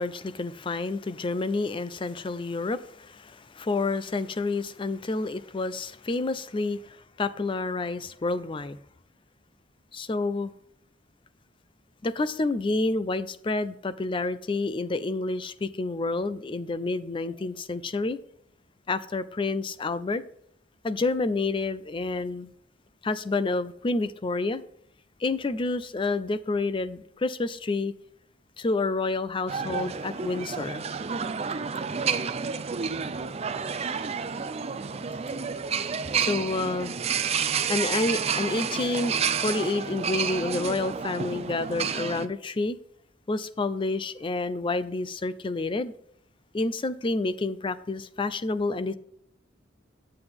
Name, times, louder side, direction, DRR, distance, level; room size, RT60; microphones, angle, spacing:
voice 1, 0.0-8.8 9.9-10.5 12.0-18.2 18.9-20.2 20.8-22.5 23.0-24.6 25.2-27.9 28.6-30.9 36.1-37.0 37.7-42.8 43.3-45.9 46.5-48.9, left 3 dB, 25° left, 14 dB, 0.4 m, -29 dB
sound 1, 29.5-42.3, right 6 dB, 35° right, 0.5 m, -30 dB
7.8 x 7.6 x 3.5 m, 0.70 s
head